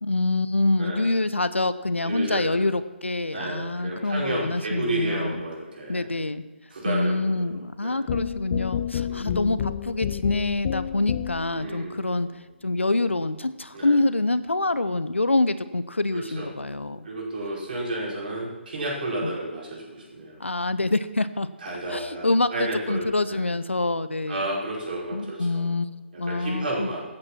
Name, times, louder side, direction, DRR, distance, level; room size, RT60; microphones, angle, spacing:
voice 1, 0.0-5.4 5.9-6.4 6.8-12.3 12.6-17.1 19.2-19.3 20.4-21.5 21.9-24.5 25.1-25.9 26.2-26.9, left 2 dB, 80° left, 14 dB, 0.8 m, -26 dB
voice 2, 0.8-1.2 2.0-2.6 3.3-6.0 6.7-8.0 9.0-9.4 11.5-12.3 13.7-14.0 16.1-16.5 17.0-20.4 21.6-23.5 24.3-25.6 26.1-27.0, right 1 dB, 50° right, -4 dB, 5.2 m, -32 dB
sound 1, 8.1-11.6, left 9 dB, 35° left, 0.5 m, -29 dB
13.5 x 9.0 x 6.0 m, 1.3 s
figure-of-eight pair, 140°, 6 cm